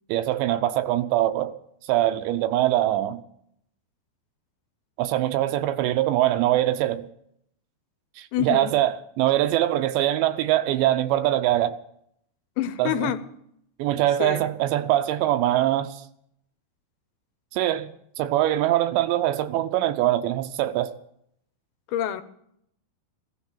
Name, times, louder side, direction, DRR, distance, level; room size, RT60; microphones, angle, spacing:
voice 1, 0.1-1.5 1.9-3.2 5.0-7.1 8.2-11.7 12.8-13.1 13.8-16.0 17.5-17.9 18.2-20.9, right 13 dB, 80° right, 2.9 m, -23 dB
voice 2, 8.3-8.7 12.6-13.3 14.2-14.5 21.9-22.2, left 11 dB, 80° left, 3.1 m, -27 dB
16.0 x 12.0 x 7.3 m
omnidirectional pair, 5.4 m